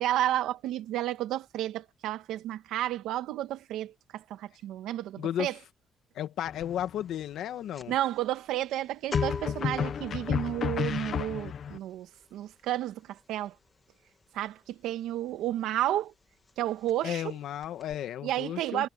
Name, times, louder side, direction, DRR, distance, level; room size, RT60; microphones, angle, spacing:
voice 1, 0.0-5.5 7.9-13.5 14.3-16.1 16.6-17.3 18.2-18.9, right 13 dB, 90° right, 2.0 m, -32 dB
voice 2, 5.2-5.5 6.1-7.9 17.0-18.9, left 11 dB, 80° left, 1.8 m, -34 dB
sound 1, 6.5-7.0 9.1-11.8, left 8 dB, 60° left, 1.0 m, -31 dB
sound 2, 6.6-6.9 7.1-15.7 16.0-16.2 16.5-17.3 17.6-17.9, left 3 dB, 25° left, 3.0 m, -42 dB
cardioid pair, 90°, 0 cm